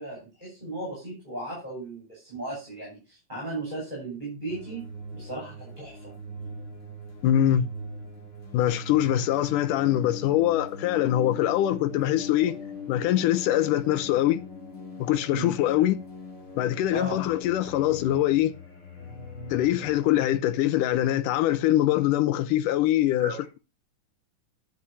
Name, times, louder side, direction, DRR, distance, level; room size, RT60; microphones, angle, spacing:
voice 1, 0.0-4.9 5.1-6.1 15.3-15.5 16.9-17.2 23.2-23.4, right 2 dB, 15° right, 5.8 m, -36 dB
sound 1, 4.5-20.1, left 3 dB, 40° left, 3.5 m, -40 dB
voice 2, 7.2-7.7 8.5-12.6 12.9-14.4 15.0-16.0 16.6-18.5 19.5-23.3, left 12 dB, 80° left, 2.4 m, -23 dB
11.0 x 6.0 x 5.5 m
omnidirectional pair, 3.7 m